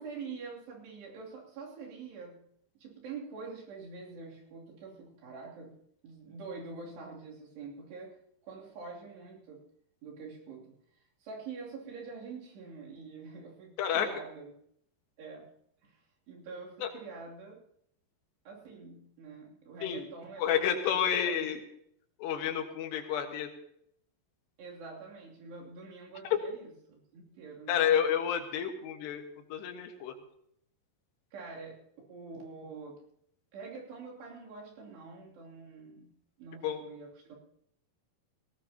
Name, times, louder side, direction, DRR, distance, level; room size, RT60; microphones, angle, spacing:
voice 1, 0.0-2.5 2.7-5.7 6.0-8.2 8.4-9.6 10.0-10.8 11.2-14.5 15.2-15.5 15.8-17.6 18.4-21.4 24.6-27.8 31.3-31.8 32.1-33.0 33.5-36.1 36.4-37.4, right 4 dB, 80° right, -3 dB, 5.0 m, -46 dB
voice 2, 20.4-21.6 22.2-23.5 27.7-29.2 29.5-30.2 36.6-36.8, left 9 dB, 85° left, 5 dB, 3.6 m, -30 dB
19.0 x 17.5 x 2.9 m, 0.71 s
omnidirectional pair, 4.8 m